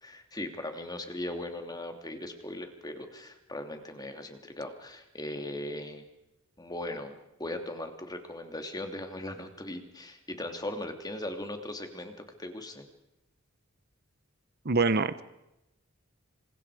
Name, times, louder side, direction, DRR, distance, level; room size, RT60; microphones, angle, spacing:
voice 1, 0.0-6.0 6.6-12.9, left 1 dB, 20° left, 5 dB, 2.9 m, -39 dB
voice 2, 14.6-15.2, right 3 dB, 50° right, 14 dB, 1.0 m, -25 dB
28.0 x 27.0 x 5.0 m, 0.91 s
head